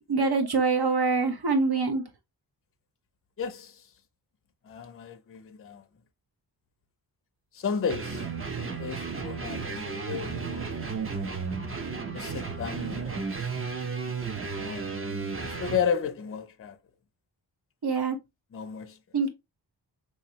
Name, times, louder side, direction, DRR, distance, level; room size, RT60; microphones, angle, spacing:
voice 1, 0.1-2.0 17.8-18.2 19.1-19.3, right 4 dB, 60° right, 0.9 m, -24 dB
voice 2, 3.4-3.9 4.6-5.9 7.5-8.3 8.6-11.3 12.1-13.6 14.6-16.8 18.5-19.0, left 6 dB, 30° left, 0.5 m, -34 dB
sound 1, 7.9-15.8, right 5 dB, 30° right, 0.6 m, -33 dB
3.8 x 3.0 x 2.8 m
wide cardioid pair, 120°, 43 cm